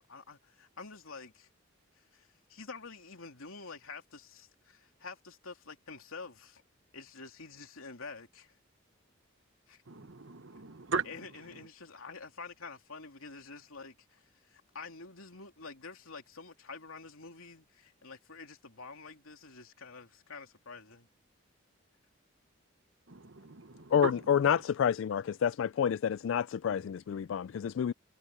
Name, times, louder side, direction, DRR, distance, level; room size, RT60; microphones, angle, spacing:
voice 1, 0.0-1.5 2.0-6.6 6.9-8.6 9.7-9.8 11.0-21.1 26.7-27.0, left 4 dB, 85° left, 3.1 m, -48 dB
voice 2, 9.9-11.1 23.1-24.1, right 4 dB, 65° right, 1.2 m, -37 dB
voice 3, 23.9-27.9, left 8 dB, 65° left, 0.3 m, -29 dB
head